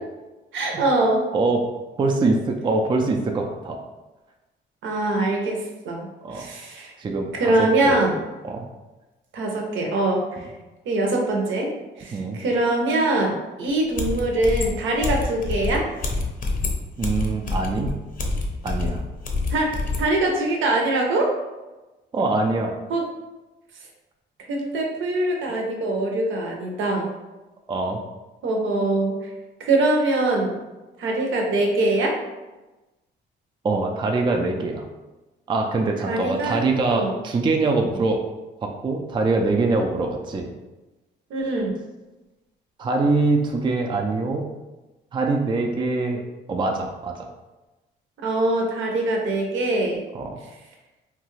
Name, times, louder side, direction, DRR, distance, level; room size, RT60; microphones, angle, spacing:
voice 1, 0.5-1.2 4.8-5.6 5.8-6.1 6.3-6.9 7.3-8.1 9.3-10.5 10.9-11.7 12.0-13.3 13.6-15.9 19.5-21.3 22.9-23.0 24.5-27.1 28.4-29.2 29.6-30.6 31.0-32.2 36.0-36.6 36.9-37.1 41.3-41.7 48.2-50.0, right 2 dB, 75° right, 1 dB, 0.7 m, -23 dB
voice 2, 2.0-3.8 6.2-6.5 7.0-8.0 8.4-8.6 10.4-10.5 12.1-12.4 17.0-17.9 18.6-19.0 22.1-22.8 27.7-28.0 33.6-34.9 35.5-38.2 38.6-40.5 42.8-44.5 45.1-46.2 46.5-47.3 50.1-50.4, right 3 dB, 25° right, 3 dB, 0.3 m, -23 dB
sound 1, 13.7-13.8 13.9-20.1, left 3 dB, 45° left, 0.6 m, -27 dB
2.9 x 2.3 x 3.1 m, 1.1 s
cardioid pair, 90°, 20 cm